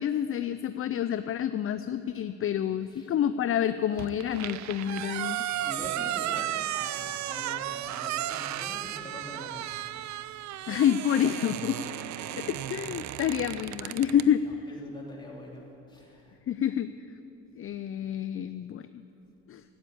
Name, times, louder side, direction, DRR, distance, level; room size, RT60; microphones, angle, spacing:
voice 1, 0.0-5.5 10.7-11.8 12.4-14.4 16.5-16.9 17.6-19.0 19.5-19.6, left 9 dB, 45° left, 12 dB, 0.4 m, -28 dB
sound 1, 4.0-14.3, right 13 dB, 70° right, 0.5 m, -34 dB
voice 2, 4.9-9.9 12.0-12.1 13.2-13.3 14.7-16.3, left 1 dB, 15° left, -3 dB, 3.1 m, -45 dB
13.0 x 9.4 x 8.6 m, 2.9 s
cardioid pair, 90°, 30 cm